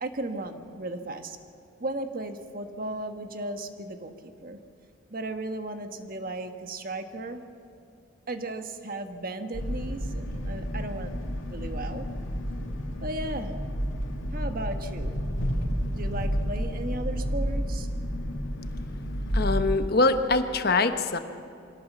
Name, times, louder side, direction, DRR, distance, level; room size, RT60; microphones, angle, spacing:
voice 1, 0.0-1.4 1.8-4.6 5.1-7.4 8.3-12.1 13.0-13.5 14.3-15.1 15.9-17.9, right 2 dB, 45° right, 7 dB, 1.4 m, -35 dB
sound 1, 9.5-19.7, equal, 90° left, 2.4 m, -30 dB
voice 2, 19.3-21.2, left 3 dB, 50° left, 8 dB, 1.1 m, -23 dB
24.5 x 17.0 x 7.3 m, 2.6 s
head